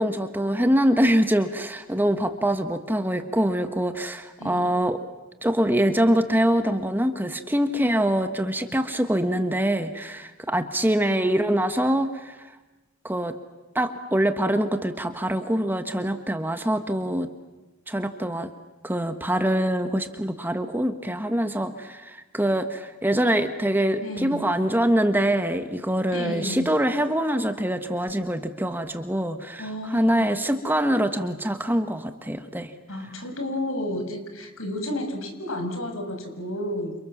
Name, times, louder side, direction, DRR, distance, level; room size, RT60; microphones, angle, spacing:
voice 1, 0.0-5.0 5.4-12.5 13.0-13.3 13.7-17.3 17.9-18.5 18.8-32.7, equal, 10° right, 8 dB, 1.4 m, -24 dB
voice 2, 4.4-4.7 10.9-11.0 24.0-24.5 26.1-26.7 29.6-30.3 32.9-37.0, left 1 dB, 75° left, 6 dB, 5.9 m, -32 dB
29.5 x 28.0 x 7.3 m, 1.1 s
head